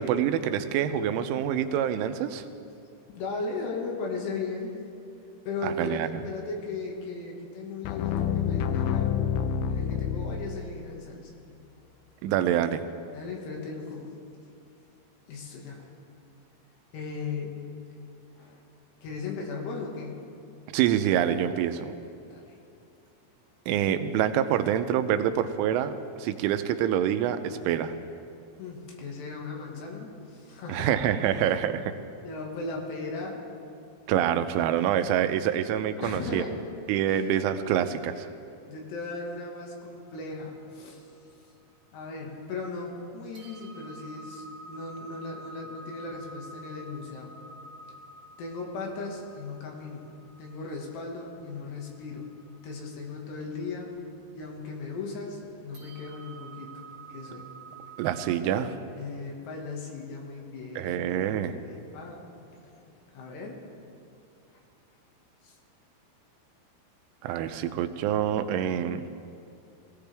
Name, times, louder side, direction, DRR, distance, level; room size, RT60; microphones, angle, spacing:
voice 1, 0.0-2.5 5.6-6.1 12.2-12.9 20.7-21.9 23.7-25.9 26.2-27.9 30.7-31.9 34.1-36.4 36.9-38.3 58.0-58.8 60.8-61.5 67.2-69.0, right 10 dB, 90° right, 9 dB, 3.2 m, -26 dB
voice 2, 3.1-4.8 5.5-9.2 9.7-11.6 13.1-14.2 15.3-15.9 16.9-17.6 18.4-18.6 19.0-20.2 22.3-22.6 28.6-31.0 31.2-31.5 32.1-33.4 36.0-36.6 37.1-37.3 38.7-41.1 41.9-47.3 48.4-52.3 52.6-53.9 54.3-56.8 57.1-57.5 59.0-61.1 61.5-63.6 65.4-65.6, left 3 dB, 65° left, 0 dB, 3.7 m, -37 dB
sound 1, 7.8-11.0, left 8 dB, 85° left, 2.7 m, -28 dB
sound 2, 40.0-42.4 42.9-43.0 43.3-58.3, right 2 dB, 55° right, 3.2 m, -49 dB
22.0 x 16.0 x 3.4 m, 2.6 s
omnidirectional pair, 5.5 m